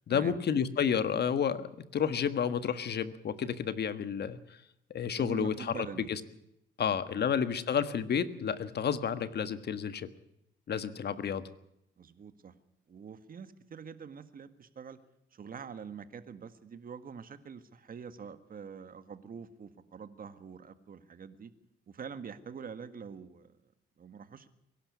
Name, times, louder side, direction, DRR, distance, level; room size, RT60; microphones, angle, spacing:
voice 1, 0.1-4.4 4.9-6.2 6.8-10.1 10.7-11.4, left 7 dB, 55° left, 12 dB, 1.5 m, -31 dB
voice 2, 5.2-6.1 7.1-7.3 12.0-12.5 12.9-15.0 15.3-21.5 21.9-23.5 24.0-24.5, right 6 dB, 45° right, 11 dB, 1.8 m, -45 dB
22.5 x 12.0 x 9.5 m, 0.78 s
cardioid pair, 90°, 20 cm